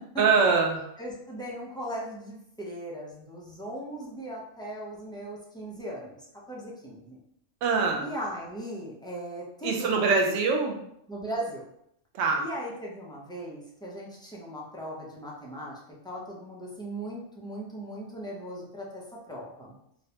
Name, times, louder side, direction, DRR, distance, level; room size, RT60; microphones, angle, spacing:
voice 1, 0.2-0.9 7.6-8.0 9.6-10.8 12.1-12.4, right 4 dB, 85° right, 2 dB, 1.0 m, -23 dB
voice 2, 1.0-6.2 6.5-7.2 8.0-10.4 11.1-11.6 12.4-15.7 16.0-19.7, right 1 dB, 5° left, -5 dB, 0.4 m, -38 dB
3.9 x 2.1 x 2.8 m, 0.74 s
omnidirectional pair, 1.2 m